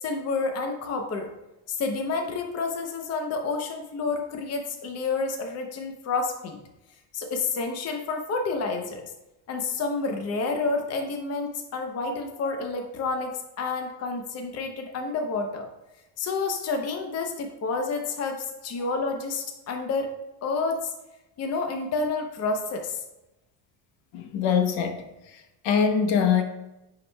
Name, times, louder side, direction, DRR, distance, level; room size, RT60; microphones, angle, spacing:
voice 1, 0.0-1.3 1.7-6.6 7.1-9.0 9.5-15.7 16.2-20.1 20.4-20.9 21.4-23.0, left 3 dB, 35° left, 0.7 m, -29 dB
voice 2, 24.1-25.0 25.6-26.4, left 7 dB, 75° left, 1.0 m, -23 dB
9.4 x 4.9 x 2.3 m
cardioid pair, 170°, 45 cm